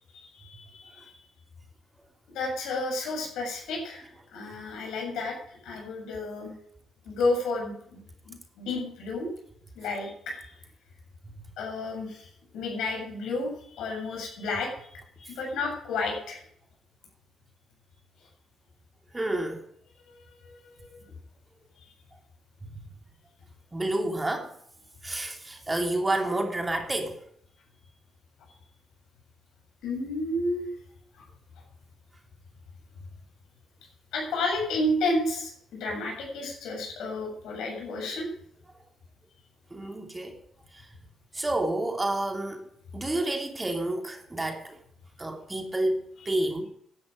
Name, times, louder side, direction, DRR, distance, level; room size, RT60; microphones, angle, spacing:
voice 1, 0.1-1.1 2.3-6.5 7.1-8.0 8.3-9.3 9.8-10.4 11.6-12.3 12.5-14.7 15.2-16.4 20.4-21.0 29.8-30.7 34.1-38.3, left 2 dB, 65° left, 0 dB, 7.4 m, -31 dB
voice 2, 19.1-19.6 22.7-22.8 23.7-24.5 25.0-27.2 39.7-40.4 41.3-42.6 42.9-44.8 45.2-46.7, right 1 dB, 20° right, 3 dB, 2.9 m, -29 dB
16.0 x 12.0 x 5.2 m, 0.67 s
figure-of-eight pair, 45°, 0 cm